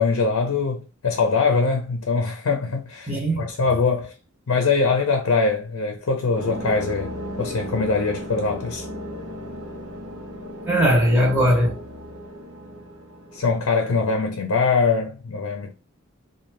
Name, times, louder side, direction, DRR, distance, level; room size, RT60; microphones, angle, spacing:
voice 1, 0.0-4.1 4.5-8.8 13.3-15.7, left 4 dB, 80° left, 0.5 m, -22 dB
voice 2, 3.1-3.5 10.7-11.8, equal, 10° right, 0.6 m, -19 dB
sound 1, 6.3-13.7, equal, 90° right, 0.7 m, -35 dB
2.6 x 2.2 x 3.1 m
head